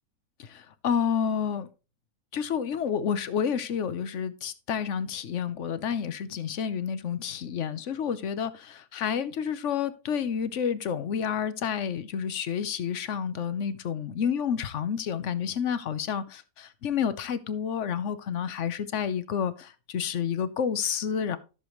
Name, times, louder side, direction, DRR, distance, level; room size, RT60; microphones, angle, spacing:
voice 1, 0.4-1.7 2.3-21.4, left 7 dB, 60° left, 1.1 m, -30 dB
14.0 x 6.8 x 3.1 m
omnidirectional pair, 1.6 m